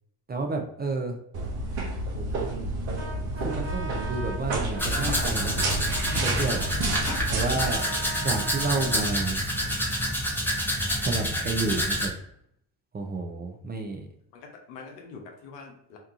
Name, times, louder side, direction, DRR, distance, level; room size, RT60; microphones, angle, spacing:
voice 1, 0.3-1.2 2.1-2.7 3.2-5.6 6.1-6.6 7.3-7.9 8.2-9.4 11.0-12.1 12.9-14.1, right 3 dB, 20° right, 3 dB, 0.4 m, -30 dB
sound 1, 1.3-7.8, right 2 dB, 80° right, 0.8 m, -30 dB
Brass instrument, 2.9-9.1, right 1 dB, 55° right, 1.1 m, -40 dB
Domestic sounds home sounds, 4.8-12.1, equal, 5° left, 0.9 m, -28 dB
voice 2, 7.6-8.1 14.3-16.0, left 4 dB, 90° left, 2 dB, 0.7 m, -43 dB
2.7 x 2.3 x 2.4 m, 0.70 s
hypercardioid pair, 50°, 50 cm